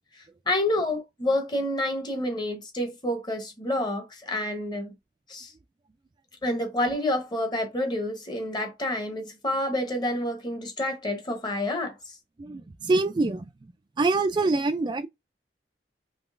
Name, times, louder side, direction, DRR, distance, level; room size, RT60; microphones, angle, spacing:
voice 1, 0.5-4.9 5.3-5.5 6.4-12.1, left 1 dB, 25° left, 1.1 m, -28 dB
voice 2, 12.4-13.5 14.0-15.1, right 3 dB, 25° right, 0.3 m, -25 dB
3.7 x 3.0 x 2.5 m
head